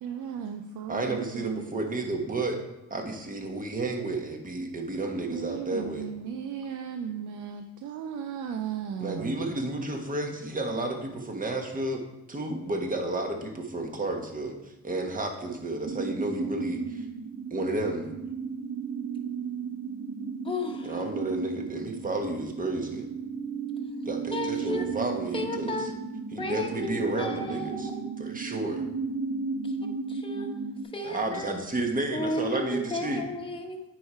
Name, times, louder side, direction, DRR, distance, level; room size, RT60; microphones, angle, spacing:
voice 1, 0.0-1.7 5.3-9.4, right 7 dB, 75° right, 5 dB, 0.6 m, -36 dB
voice 2, 0.9-2.6 2.9-6.1 9.0-12.0 12.3-17.0 17.5-18.1 20.8-23.1 24.0-25.9 26.3-27.9 28.2-28.8 31.0-33.2, right 2 dB, 25° right, 3 dB, 1.4 m, -31 dB
sound 1, 15.8-30.8, right 5 dB, 50° right, 1.2 m, -35 dB
voice 3, 20.4-21.0 24.3-24.9 25.3-25.9 26.4-28.1 29.6-29.7 30.1-30.5 30.9-31.5 32.1-33.8, left 2 dB, 15° left, 2 dB, 1.1 m, -33 dB
9.1 x 4.9 x 4.4 m, 0.92 s
cardioid pair, 90°, 30 cm